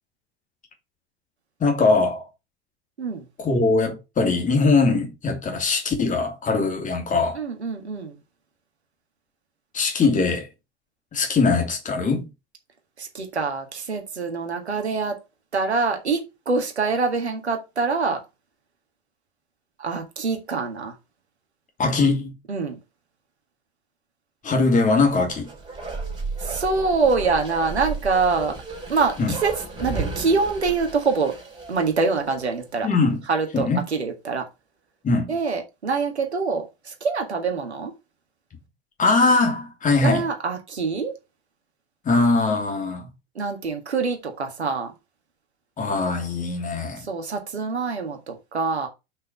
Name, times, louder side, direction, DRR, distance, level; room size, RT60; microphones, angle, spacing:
voice 1, 1.6-2.3 3.4-7.4 9.7-10.5 11.1-12.3 21.8-22.4 24.4-25.5 29.2-29.3 32.8-33.2 33.5-33.8 35.0-35.3 39.0-40.3 42.0-43.1 45.8-47.1, left 3 dB, 25° left, 2.8 m, -21 dB
voice 2, 7.4-8.1 13.0-15.2 15.5-18.2 19.8-21.0 22.5-22.8 26.4-28.6 28.9-29.5 29.8-31.3 31.7-32.9 33.3-34.5 35.3-37.9 40.0-41.1 43.4-44.9 47.0-48.9, right 4 dB, 80° right, 1.8 m, -25 dB
Bark, 25.1-32.7 33.0-33.1, right 3 dB, 15° right, 3.5 m, -34 dB
6.0 x 5.3 x 4.8 m
figure-of-eight pair, 85°, 33 cm